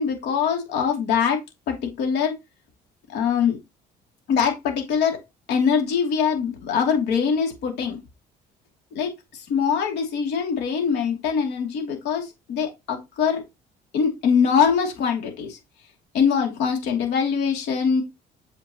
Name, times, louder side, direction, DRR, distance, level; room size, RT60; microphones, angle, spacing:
voice 1, 0.0-1.4 1.7-2.3 3.1-3.6 4.3-5.2 5.5-8.0 8.9-13.4 13.9-15.6 16.1-18.0, left 6 dB, 85° left, 2 dB, 2.7 m, -23 dB
8.3 x 5.1 x 2.9 m, 0.21 s
cardioid pair, 110°, 17 cm